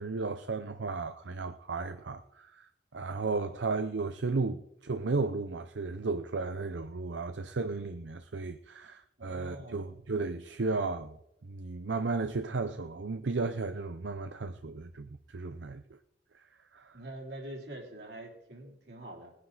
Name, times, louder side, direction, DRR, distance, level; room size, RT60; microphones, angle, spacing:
voice 1, 0.0-2.6 2.9-11.2 11.5-15.8 16.7-17.0, right 3 dB, 85° right, 0.7 m, -34 dB
voice 2, 9.2-9.9 16.9-19.3, right 1 dB, 65° right, 3.4 m, -45 dB
19.5 x 9.9 x 4.0 m
head